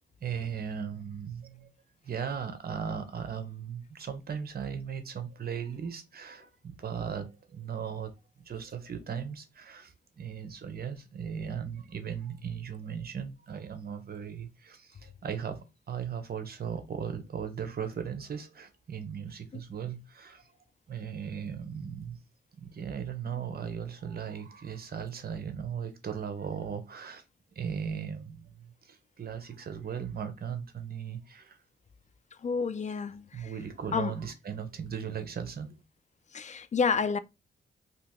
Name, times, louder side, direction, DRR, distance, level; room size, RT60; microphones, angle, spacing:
voice 1, 0.2-1.7 2.0-8.1 8.5-20.5 20.9-22.2 22.6-27.2 27.5-31.6 33.3-35.7, right 7 dB, 50° right, 0.8 m, -37 dB
voice 2, 32.4-33.5 33.9-34.1 36.3-37.2, left 5 dB, 40° left, 0.4 m, -29 dB
2.8 x 2.7 x 3.5 m
cardioid pair, 65°, 19 cm